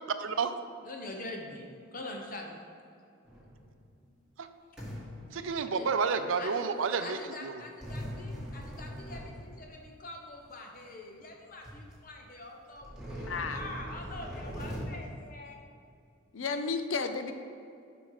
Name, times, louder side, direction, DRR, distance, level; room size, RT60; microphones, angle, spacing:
voice 1, 0.2-0.5 4.4-4.5 5.3-7.5, right 5 dB, 75° right, 9 dB, 0.5 m, -30 dB
voice 2, 0.8-2.7 3.3-3.7 5.7-5.9 6.4-6.7 7.0-15.6, left 2 dB, 40° left, 1 dB, 1.0 m, -44 dB
sound 1, 3.2-3.9 4.8-6.0 7.8-9.9 10.7-10.8 11.3-11.4 11.6-12.0 12.8-14.8, equal, 5° right, 1.7 m, -41 dB
voice 3, 13.3-13.6 16.3-17.3, left 4 dB, 70° left, 8 dB, 0.6 m, -32 dB
7.3 x 6.0 x 4.9 m, 2.5 s
head